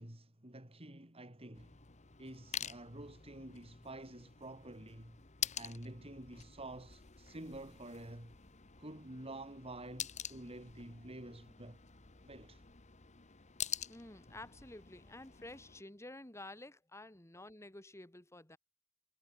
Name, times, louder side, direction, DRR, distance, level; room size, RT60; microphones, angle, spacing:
voice 1, 0.0-1.7 2.2-5.2 5.6-8.4 8.8-11.8 12.2-12.6, right 1 dB, 25° right, 3.8 m, -49 dB
sound 1, 1.5-15.8, left 9 dB, 35° left, 1.4 m, -47 dB
voice 2, 13.9-18.6, left 2 dB, 15° left, 1.6 m, -51 dB
head